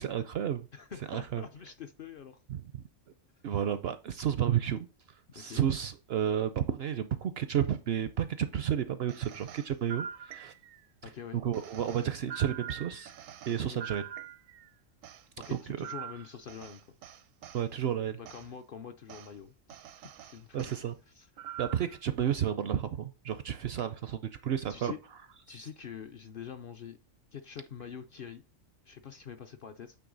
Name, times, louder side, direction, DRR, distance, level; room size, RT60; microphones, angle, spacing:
voice 1, 0.0-0.7 1.1-1.4 2.5-2.8 3.4-4.9 5.3-10.5 11.3-13.1 13.5-14.1 17.5-18.2 20.5-20.9 21.6-24.9, right 9 dB, 65° right, 11 dB, 0.6 m, -31 dB
voice 2, 0.7-2.4 5.3-5.6 11.0-11.4 13.5-13.8 15.4-16.8 18.2-19.5 20.2-20.7 21.1-21.3 24.7-25.0 25.5-27.0 27.3-28.4 28.8-30.0, left 7 dB, 55° left, 8 dB, 0.6 m, -45 dB
sound 1, 9.1-10.9 11.5-14.7 15.0-17.6 18.2-18.5 19.1-19.3 19.7-20.8 21.4-22.0, right 9 dB, 80° right, 1.0 m, -44 dB
8.6 x 3.4 x 3.8 m, 0.32 s
omnidirectional pair, 1.4 m